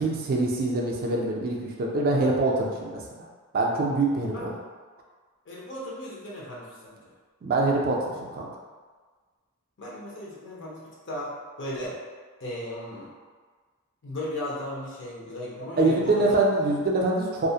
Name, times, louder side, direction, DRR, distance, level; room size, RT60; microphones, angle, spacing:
voice 1, 0.0-3.0 3.5-4.5 7.4-8.5 15.8-17.5, right 2 dB, 45° right, -1 dB, 0.4 m, -24 dB
voice 2, 4.2-4.5 5.5-7.1 9.8-12.0 12.4-13.1 14.0-16.4, left 1 dB, 60° left, -5 dB, 0.6 m, -36 dB
2.4 x 2.0 x 2.7 m, 1.5 s
head